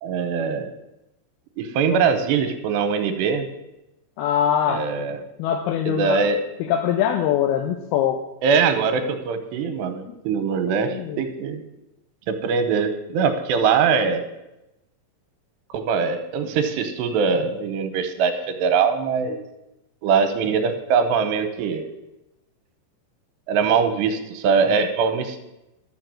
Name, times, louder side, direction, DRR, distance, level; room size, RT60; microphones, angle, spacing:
voice 1, 0.0-0.7 1.6-3.5 4.7-5.2 5.8-6.4 8.4-11.6 12.3-14.3 15.7-19.4 20.0-21.9 23.5-25.4, right 6 dB, 80° right, 8 dB, 3.1 m, -22 dB
voice 2, 4.2-4.8 5.4-6.3 6.7-8.2 10.1-10.2 10.9-11.2, left 9 dB, 75° left, 5 dB, 2.5 m, -22 dB
12.5 x 7.1 x 7.6 m, 0.95 s
omnidirectional pair, 5.0 m